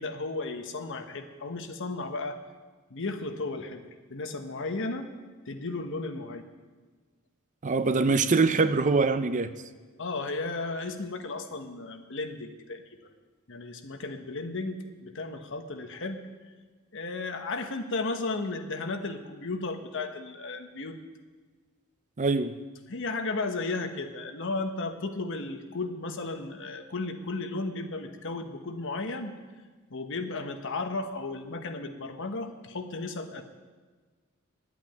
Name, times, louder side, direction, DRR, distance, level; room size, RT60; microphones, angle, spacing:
voice 1, 0.0-2.4 2.9-3.8 4.1-5.1 5.5-6.5 10.0-12.8 13.5-16.3 16.9-21.0 22.9-29.3 29.9-33.4, left 3 dB, 60° left, 6 dB, 1.1 m, -34 dB
voice 2, 7.6-9.5 22.2-22.6, right 4 dB, 35° right, 12 dB, 0.5 m, -23 dB
11.0 x 8.3 x 9.3 m, 1.4 s
head